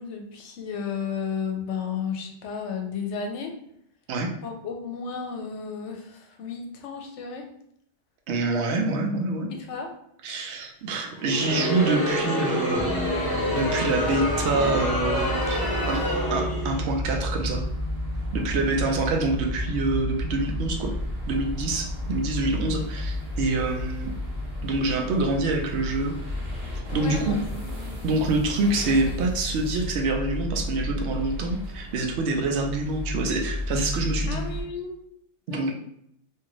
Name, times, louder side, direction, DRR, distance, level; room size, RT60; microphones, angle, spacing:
voice 1, 0.0-3.5 4.4-7.4 9.5-9.9 26.9-27.7 34.3-35.0 35.5-35.7, left 6 dB, 80° left, 3 dB, 0.9 m, -33 dB
voice 2, 8.3-9.5 10.2-12.9 13.5-16.0 16.3-17.6 18.3-20.9 21.3-24.1 24.6-26.1 26.7-27.4 28.0-34.4 35.5-35.7, right 3 dB, 70° right, 2 dB, 0.8 m, -26 dB
Crowd, 11.1-16.9, left 1 dB, 25° left, 0.6 m, -27 dB
sound 1, 12.7-24.9, equal, 30° right, 0.6 m, -32 dB
sound 2, 16.9-34.6, left 1 dB, 45° right, 0.9 m, -34 dB
2.7 x 2.5 x 2.9 m, 0.71 s
omnidirectional pair, 1.2 m